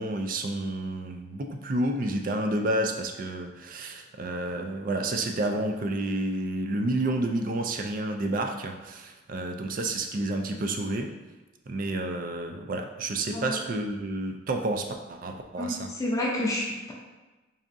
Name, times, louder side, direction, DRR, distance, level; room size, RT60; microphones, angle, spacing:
voice 1, 0.0-11.1 11.7-15.9, right 2 dB, 40° right, 4 dB, 0.4 m, -30 dB
voice 2, 15.6-16.9, left 1 dB, 15° left, -4 dB, 0.5 m, -29 dB
4.1 x 3.5 x 2.5 m, 1.2 s
head